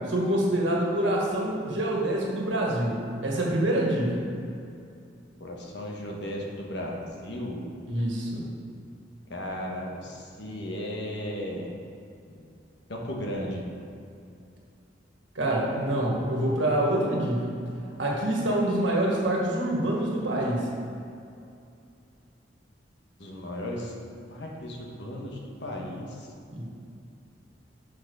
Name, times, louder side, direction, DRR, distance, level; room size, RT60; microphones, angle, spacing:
voice 1, 0.1-4.2 7.9-8.5 15.3-17.5 18.0-20.7 26.5-26.6, right 1 dB, 90° right, -2 dB, 1.6 m, -26 dB
voice 2, 5.4-7.6 9.3-11.7 12.3-12.4 12.9-13.6 23.2-23.9 24.3-26.3, left 1 dB, 65° left, -1 dB, 1.2 m, -35 dB
6.3 x 6.1 x 4.8 m, 2.5 s
head